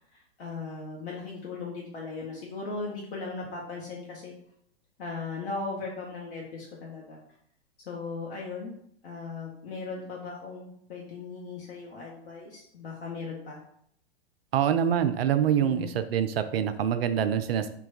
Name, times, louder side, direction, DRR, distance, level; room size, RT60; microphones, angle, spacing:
voice 1, 0.0-4.3 5.0-7.2 7.8-8.7 9.0-13.6 15.6-15.9, left 4 dB, 60° left, -4 dB, 0.9 m, -38 dB
voice 2, 14.5-17.7, right 9 dB, 65° right, 10 dB, 0.4 m, -25 dB
3.1 x 2.3 x 3.9 m, 0.68 s
figure-of-eight pair, 110°, 32 cm